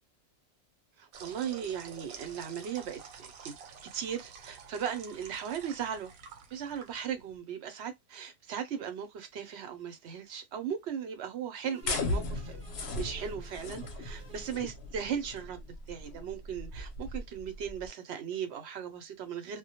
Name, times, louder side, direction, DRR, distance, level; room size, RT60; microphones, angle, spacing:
voice 1, 1.0-6.1 6.5-12.6 13.0-19.6, right 8 dB, 65° right, 0.8 m, -37 dB
sound 1, 1.1-7.4, right 6 dB, 90° right, 1.0 m, -49 dB
sound 2, 11.6-15.2, right 4 dB, 5° right, 1.0 m, -56 dB
sound 3, 11.8-17.9, left 2 dB, 60° left, 0.8 m, -37 dB
2.2 x 2.1 x 2.7 m
omnidirectional pair, 1.4 m